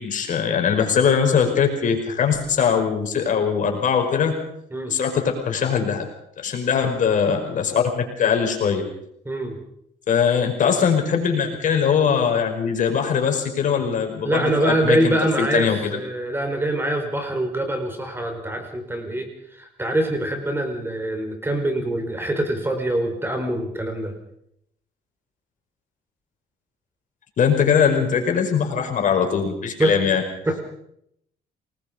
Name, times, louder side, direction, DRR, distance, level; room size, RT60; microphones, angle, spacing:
voice 1, 0.0-4.4 4.9-6.0 6.4-8.8 10.1-16.0 27.4-30.2, left 7 dB, 50° left, 4 dB, 5.3 m, -21 dB
voice 2, 9.2-9.6 14.2-24.1 29.8-30.0 30.5-30.6, right 1 dB, 15° right, 5 dB, 4.6 m, -24 dB
28.0 x 20.0 x 5.2 m, 0.74 s
cardioid pair, 110°, 17 cm